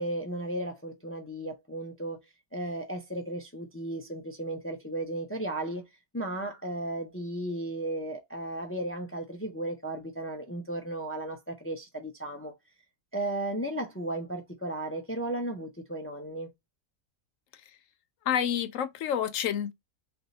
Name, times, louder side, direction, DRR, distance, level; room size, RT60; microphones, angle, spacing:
voice 1, 0.0-2.2 2.5-5.9 6.1-12.5 13.1-16.5, right 1 dB, 15° left, 0.4 m, -35 dB
voice 2, 18.3-19.7, left 9 dB, 70° left, 0.9 m, -28 dB
3.3 x 2.6 x 4.1 m
omnidirectional pair, 1.5 m